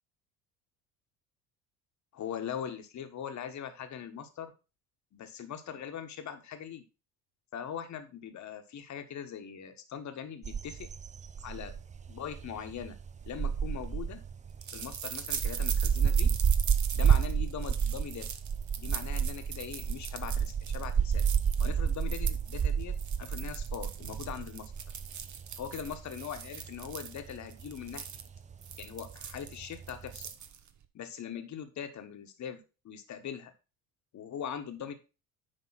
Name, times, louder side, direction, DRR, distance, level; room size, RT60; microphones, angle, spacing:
voice 1, 2.1-4.5 5.1-6.8 7.5-10.9 11.4-11.7 12.1-12.9 13.2-14.2 14.7-16.3 16.9-18.3 18.8-21.2 21.6-24.7 25.6-28.1 28.7-30.3 30.9-33.5 34.1-34.9, left 8 dB, 45° left, 7 dB, 1.6 m, -41 dB
sound 1, 10.4-30.2, right 7 dB, 20° right, 0.5 m, -31 dB
sound 2, 13.4-30.8, right 8 dB, 45° right, 1.2 m, -42 dB
10.0 x 3.7 x 5.8 m, 0.31 s
hypercardioid pair, 65°, 40 cm